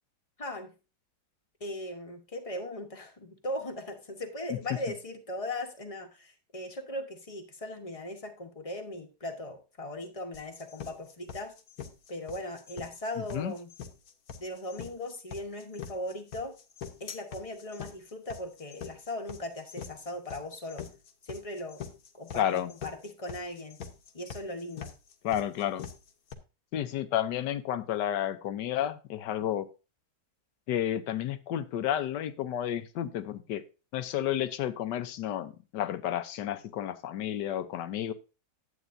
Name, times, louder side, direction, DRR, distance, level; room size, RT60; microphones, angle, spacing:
voice 1, 0.4-0.7 1.6-11.5 12.1-13.7 14.4-16.6 17.0-20.8 21.2-21.8 22.1-23.8 24.1-24.9, left 1 dB, 25° left, 5 dB, 1.0 m, -38 dB
sound 1, 10.3-26.3, left 7 dB, 60° left, 1.4 m, -43 dB
voice 2, 22.3-22.7 25.2-25.9 26.7-29.7 30.7-33.6 33.9-38.1, left 11 dB, 75° left, 12 dB, 1.4 m, -31 dB
11.0 x 8.3 x 2.6 m, 0.30 s
omnidirectional pair, 1.9 m